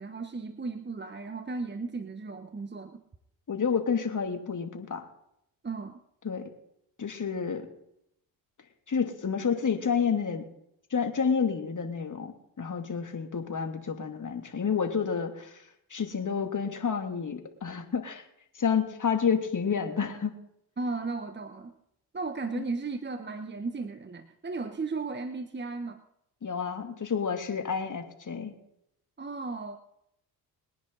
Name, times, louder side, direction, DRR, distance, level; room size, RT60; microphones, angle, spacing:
voice 1, 0.0-3.0 5.6-6.0 20.8-21.7 22.1-26.0 29.2-29.8, right 3 dB, 25° right, 9 dB, 1.3 m, -35 dB
voice 2, 3.5-5.1 6.2-6.4 7.0-7.7 8.9-10.4 10.9-12.3 12.6-15.6 15.9-18.2 18.5-20.4 22.6-22.7 26.4-28.5, left 6 dB, 40° left, 5 dB, 2.9 m, -29 dB
22.0 x 10.0 x 4.1 m, 0.77 s
hypercardioid pair, 50°, 46 cm